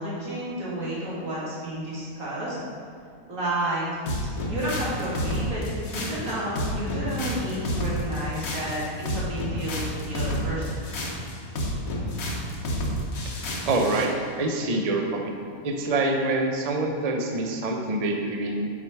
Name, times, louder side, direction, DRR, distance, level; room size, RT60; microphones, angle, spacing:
voice 1, 0.0-2.6 3.3-3.9 4.5-5.6 5.9-10.8, right 1 dB, 70° right, -8 dB, 2.5 m, -31 dB
sound 1, 4.1-14.1, equal, 70° left, 1.4 m, -30 dB
voice 2, 13.7-15.3 15.6-18.7, right 2 dB, 50° right, 2 dB, 0.4 m, -26 dB
6.1 x 5.9 x 4.5 m, 2.3 s
omnidirectional pair, 1.5 m